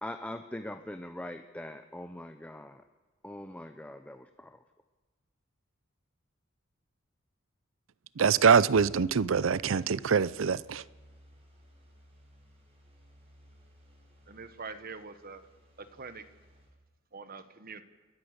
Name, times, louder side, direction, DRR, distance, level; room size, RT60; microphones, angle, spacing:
voice 1, 0.0-2.8 3.2-4.6, left 1 dB, 5° left, 7 dB, 0.6 m, -42 dB
voice 2, 8.2-10.8, right 6 dB, 75° right, 19 dB, 0.5 m, -24 dB
sound 1, 8.7-16.7, equal, 30° right, 4.8 m, -58 dB
voice 3, 14.3-15.4 15.8-16.2 17.1-17.8, right 4 dB, 50° right, 11 dB, 1.2 m, -44 dB
29.0 x 11.5 x 8.0 m, 1.3 s
head